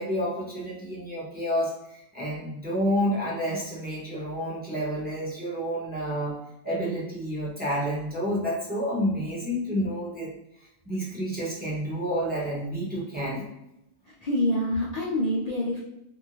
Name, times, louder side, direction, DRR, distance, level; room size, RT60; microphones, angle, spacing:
voice 1, 0.0-6.4 6.6-10.3 10.9-13.5, equal, 10° right, -5 dB, 0.7 m, -29 dB
voice 2, 14.1-15.8, left 1 dB, 65° left, -6 dB, 0.4 m, -26 dB
2.6 x 2.6 x 2.9 m, 0.84 s
omnidirectional pair, 1.4 m